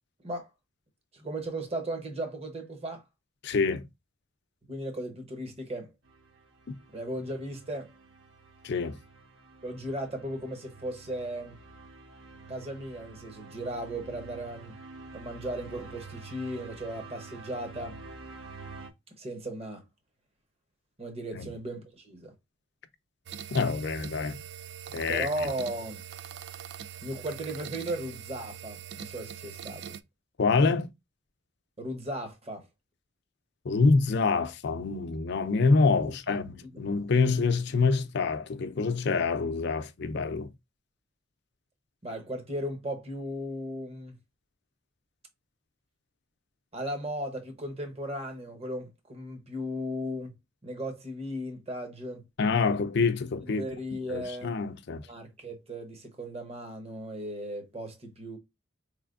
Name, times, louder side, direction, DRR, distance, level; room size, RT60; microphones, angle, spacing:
voice 1, 1.1-3.0 4.7-5.9 6.9-7.9 9.6-11.6 12.5-14.8 15.1-18.0 19.2-19.8 21.0-22.3 25.1-26.0 27.0-30.0 31.8-32.7 36.3-36.4 42.0-44.2 46.7-50.3 50.6-52.3 53.6-54.7 55.1-58.4, right 1 dB, 30° right, 0.8 m, -36 dB
voice 2, 3.4-3.9 8.6-9.0 21.3-21.5 23.5-24.4 24.9-25.3 30.4-30.9 33.6-40.5 52.4-53.6 54.1-55.1, left 4 dB, 55° left, 0.5 m, -26 dB
sound 1, 6.0-18.9, right 3 dB, 80° right, 1.0 m, -48 dB
sound 2, 23.3-30.0, right 9 dB, 55° right, 0.3 m, -42 dB
4.3 x 3.3 x 2.4 m
head